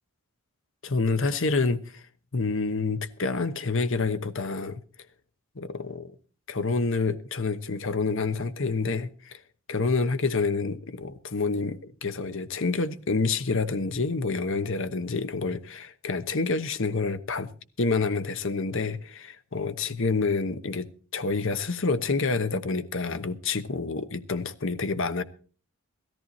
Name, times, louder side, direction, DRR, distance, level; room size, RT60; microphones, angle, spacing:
voice 1, 0.8-2.0 2.3-4.8 5.6-6.1 6.5-9.4 9.7-17.5 17.8-25.2, left 4 dB, 60° left, 1.0 m, -28 dB
17.0 x 14.0 x 4.2 m
head